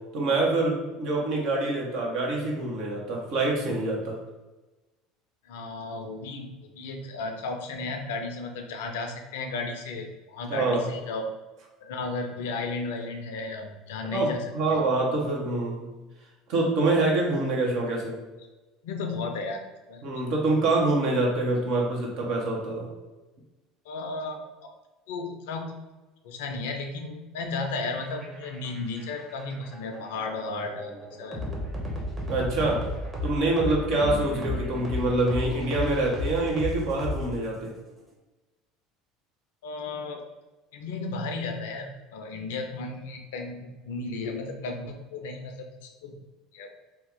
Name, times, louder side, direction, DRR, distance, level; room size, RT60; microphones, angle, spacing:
voice 1, 0.1-4.2 10.5-10.8 14.1-15.9 16.5-18.2 20.0-22.9 32.3-32.8 33.2-37.7, right 2 dB, 60° right, -1 dB, 0.9 m, -26 dB
voice 2, 5.4-6.5 6.7-11.3 11.8-14.4 14.7-14.8 18.8-20.0 23.9-24.4 25.1-25.6 26.2-31.5 39.6-40.2 40.7-46.2 46.5-46.7, left 3 dB, 70° left, 4 dB, 0.5 m, -34 dB
sound 1, 28.0-37.7, left 1 dB, 20° right, 1.0 m, -33 dB
2.8 x 2.3 x 3.7 m, 1.1 s
hypercardioid pair, 70°, 0 cm